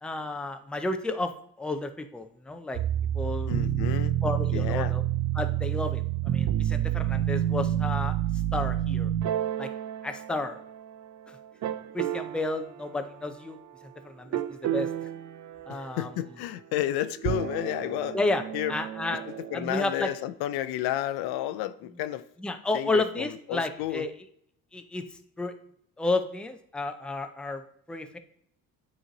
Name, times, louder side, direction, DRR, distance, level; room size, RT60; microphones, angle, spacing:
voice 1, 0.0-1.3 1.6-2.8 3.1-3.6 4.2-5.0 5.3-8.2 8.5-9.1 9.6-9.7 10.0-10.6 11.3-11.4 11.9-13.6 13.8-14.9 15.7-16.1 18.1-18.4 18.7-19.2 19.5-20.1 22.4-24.1 24.7-25.0 25.4-25.5 26.0-28.2, left 2 dB, 5° left, 0.4 m, -31 dB
sound 1, 2.7-11.1 11.6-12.5 14.3-16.0 17.1-19.7, right 12 dB, 50° right, 0.5 m, -29 dB
voice 2, 3.5-4.2 4.5-4.9 15.7-18.2 18.5-18.8 19.5-22.3 22.7-24.1, left 13 dB, 85° left, 0.5 m, -31 dB
8.9 x 3.1 x 3.9 m
cardioid pair, 105°, 37 cm